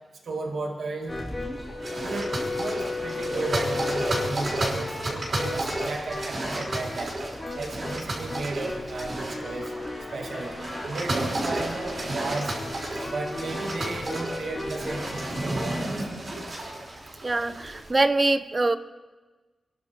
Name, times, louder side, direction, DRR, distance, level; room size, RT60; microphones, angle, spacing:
voice 1, 0.3-1.2 2.0-7.2 7.5-9.7 10.1-10.5 10.9-12.5 13.0-16.0, right 3 dB, 80° right, 2 dB, 2.2 m, -34 dB
sound 1, 1.1-16.1, left 2 dB, 25° left, 3.2 m, -35 dB
sound 2, 1.8-17.9, right 1 dB, 55° right, 5.4 m, -33 dB
voice 2, 17.2-18.8, right 2 dB, 30° right, 13 dB, 0.7 m, -24 dB
27.5 x 12.0 x 4.5 m, 1.3 s
wide cardioid pair, 110°, 0 cm